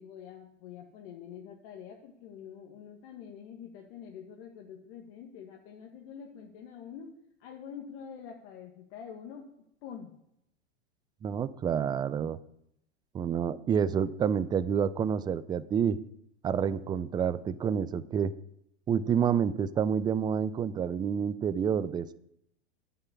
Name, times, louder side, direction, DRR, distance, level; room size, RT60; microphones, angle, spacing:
voice 1, 0.0-7.1 7.4-9.5 9.8-10.2, left 7 dB, 55° left, 1 dB, 1.6 m, -46 dB
voice 2, 11.2-12.4 13.1-16.0 16.4-18.3 18.9-22.1, right 7 dB, 15° right, 15 dB, 0.3 m, -28 dB
9.6 x 5.8 x 8.4 m, 0.77 s
hypercardioid pair, 105°, 34 cm